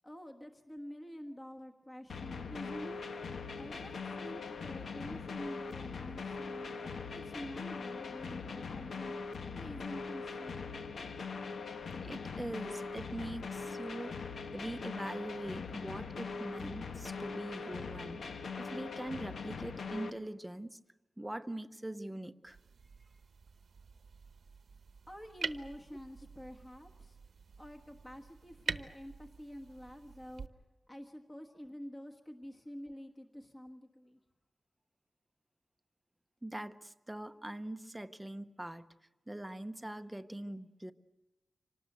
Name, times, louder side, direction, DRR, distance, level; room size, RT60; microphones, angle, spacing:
voice 1, 0.0-3.0 3.5-10.9 25.1-27.2 27.6-30.6 30.9-34.2, equal, 20° left, 3 dB, 1.4 m, -48 dB
sound 1, 2.1-20.1, left 4 dB, 75° left, 1.1 m, -41 dB
voice 2, 12.0-18.2 18.6-20.8 21.2-22.6 36.4-38.9 39.3-40.9, right 1 dB, 5° right, 9 dB, 0.7 m, -42 dB
sound 2, 22.4-30.5, right 5 dB, 65° right, 0.9 m, -46 dB
26.0 x 19.0 x 8.0 m, 1.1 s
wide cardioid pair, 165°, 0 cm